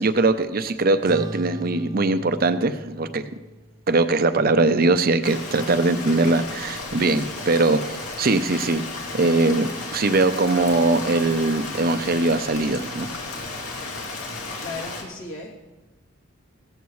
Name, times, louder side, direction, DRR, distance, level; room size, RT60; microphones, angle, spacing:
voice 1, 0.0-3.2 3.9-8.8 9.1-13.1, right 3 dB, 40° right, 10 dB, 0.6 m, -21 dB
sound 1, 1.0-5.9, equal, 20° right, 0.9 m, -40 dB
Rain, 5.2-15.0, left 3 dB, 85° left, 2.5 m, -34 dB
voice 2, 14.6-15.6, left 3 dB, 65° left, -3 dB, 2.8 m, -35 dB
16.5 x 14.0 x 3.2 m, 1.1 s
head